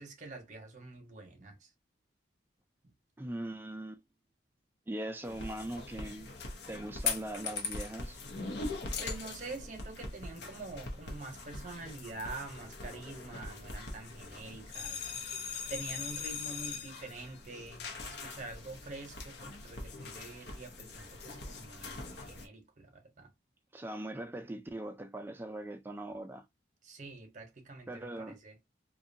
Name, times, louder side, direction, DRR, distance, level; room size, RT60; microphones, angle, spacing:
voice 1, 0.0-1.7 2.8-2.9 9.0-15.1 15.7-23.3 26.8-28.6, right 3 dB, 40° right, 0.7 m, -46 dB
voice 2, 3.2-4.0 4.9-6.3 6.7-8.2 23.7-26.4 27.9-28.4, right 1 dB, 10° right, 0.3 m, -40 dB
sound 1, 5.2-22.5, left 4 dB, 60° left, 0.7 m, -41 dB
2.7 x 2.2 x 2.6 m
head